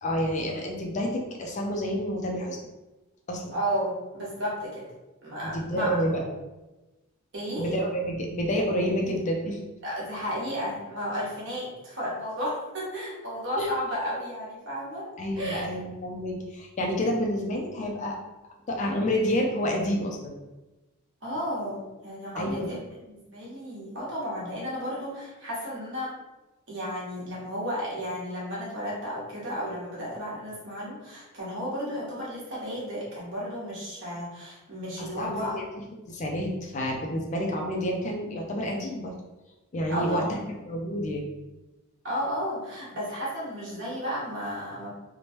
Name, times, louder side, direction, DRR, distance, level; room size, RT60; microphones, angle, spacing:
voice 1, 0.0-2.6 3.3-3.5 5.4-6.2 7.6-9.6 13.6-13.7 15.2-18.2 18.7-20.3 22.4-22.7 35.0-35.5 36.1-39.1 39.7-40.4 40.7-41.3, equal, 35° left, 0 dB, 0.3 m, -29 dB
voice 2, 3.5-4.9 5.2-6.0 7.3-7.7 9.8-15.1 15.4-15.6 21.2-26.1 26.7-35.6 39.9-40.3 42.0-44.9, equal, 55° right, -6 dB, 1.1 m, -33 dB
2.9 x 2.1 x 2.9 m, 1.1 s
head